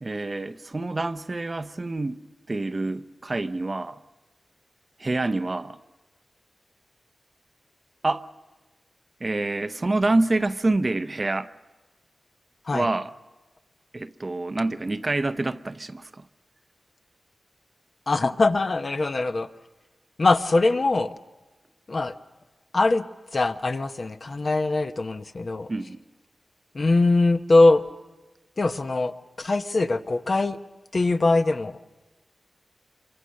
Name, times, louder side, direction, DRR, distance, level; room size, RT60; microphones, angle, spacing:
voice 1, 0.0-2.2 2.5-4.0 5.0-5.8 8.0-8.3 9.2-11.5 12.7-13.1 13.9-16.2 25.7-26.0, right 2 dB, 40° right, 0.7 m, -27 dB
voice 2, 18.1-19.5 20.2-21.1 21.9-22.1 22.7-23.1 23.3-25.7 26.7-27.8 28.6-30.6 30.9-31.8, left 2 dB, 55° left, 0.9 m, -22 dB
25.5 x 23.5 x 6.5 m
cardioid pair, 55°, 0 cm